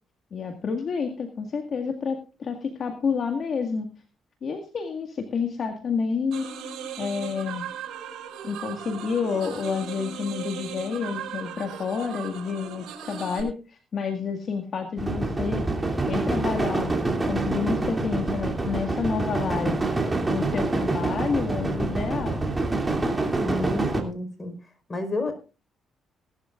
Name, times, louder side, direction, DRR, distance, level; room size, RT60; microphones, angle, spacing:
voice 1, 0.3-3.9 4.4-6.5 7.0-7.7 8.4-15.7 16.1-19.8 20.3-22.4, left 5 dB, 50° left, 4 dB, 1.9 m, -29 dB
sound 1, 6.3-13.4, right 7 dB, 80° right, 4.2 m, -37 dB
sound 2, 15.0-24.0, right 2 dB, 20° right, 2.8 m, -26 dB
voice 2, 23.4-24.5 24.9-25.3, left 2 dB, 30° left, 7 dB, 4.6 m, -30 dB
19.0 x 12.0 x 2.5 m, 0.33 s
cardioid pair, 85°, 0 cm